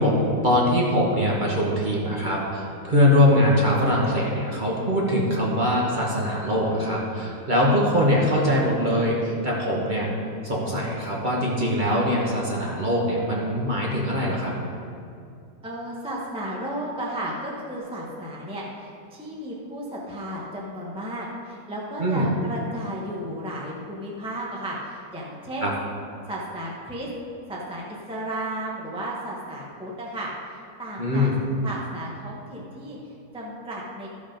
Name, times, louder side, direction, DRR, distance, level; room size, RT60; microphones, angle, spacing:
voice 1, 0.0-10.1 10.4-14.5 22.0-22.3 25.6-25.7 31.0-31.4, left 1 dB, 30° right, -4 dB, 1.3 m, -22 dB
voice 2, 15.6-25.7 26.3-27.1 27.5-31.3 31.6-34.1, right 1 dB, 5° right, -4 dB, 0.9 m, -34 dB
13.0 x 5.2 x 5.2 m, 2.5 s
omnidirectional pair, 1.9 m